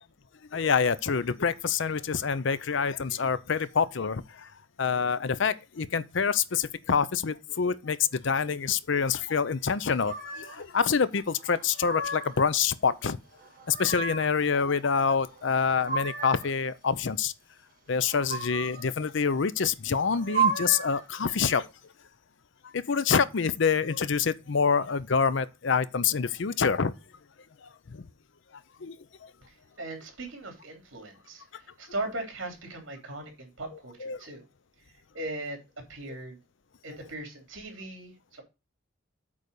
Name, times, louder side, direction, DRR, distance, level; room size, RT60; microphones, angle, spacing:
voice 1, 0.5-4.5 4.8-13.2 13.7-17.3 17.9-21.7 22.7-26.9 27.6-28.1 28.8-29.0 29.2-29.3 34.0-34.2, left 6 dB, 60° left, 0.6 m, -26 dB
sound 1, 10.0-10.6 11.5-12.5 13.4-14.4 15.4-16.5 18.0-18.9 20.0-21.0, right 5 dB, 45° right, 1.8 m, -32 dB
voice 2, 29.5-34.4 35.1-35.6 35.9-36.4 36.8-38.4, right 2 dB, 65° right, 3.3 m, -39 dB
8.5 x 4.0 x 6.6 m
head